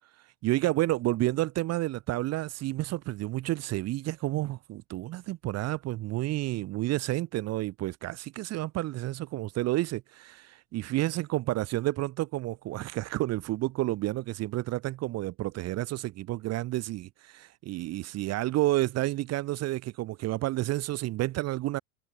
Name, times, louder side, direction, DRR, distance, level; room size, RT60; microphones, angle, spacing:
voice 1, 0.4-21.8, right 16 dB, 40° right, 1.3 m, -30 dB
hypercardioid pair, 100°, 39 cm